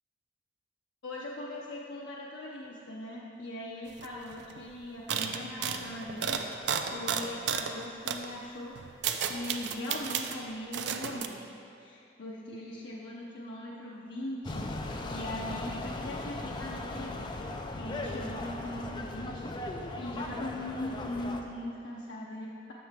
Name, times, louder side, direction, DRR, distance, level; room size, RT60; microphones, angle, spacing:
voice 1, 1.0-9.0 9.3-22.7, left 1 dB, 80° left, -4 dB, 0.6 m, -40 dB
sound 1, 4.0-4.1 4.3-4.6 5.1-7.7 8.1-8.3 8.7-10.4 10.7-11.3, right 7 dB, 70° right, 0.4 m, -33 dB
sound 2, 14.4-21.4, left 2 dB, 25° left, 0.3 m, -38 dB
7.6 x 6.4 x 3.4 m, 2.6 s
head